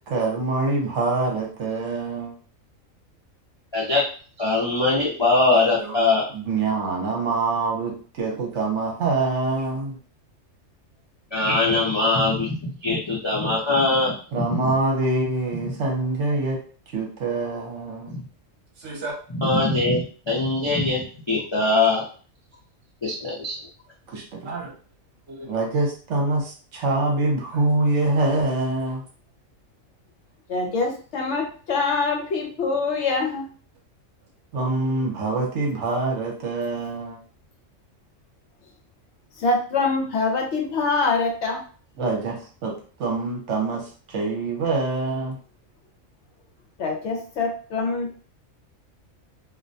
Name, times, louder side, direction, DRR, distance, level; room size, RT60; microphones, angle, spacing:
voice 1, 0.1-2.3 5.5-6.0 6.3-10.0 14.3-16.6 16.9-18.1 18.8-19.2 24.1-24.7 25.3-29.0 34.5-37.2 42.0-45.4, right 3 dB, 65° right, -1 dB, 1.0 m, -25 dB
voice 2, 3.7-4.0 4.4-6.2 11.3-12.6 12.8-14.7 18.1-18.2 19.3-22.0 23.0-23.6, left 2 dB, 40° left, -7 dB, 0.4 m, -22 dB
voice 3, 30.5-33.5 39.4-41.6 46.8-48.3, left 3 dB, 65° left, 1 dB, 0.8 m, -24 dB
2.4 x 2.1 x 2.6 m, 0.41 s
omnidirectional pair, 1.4 m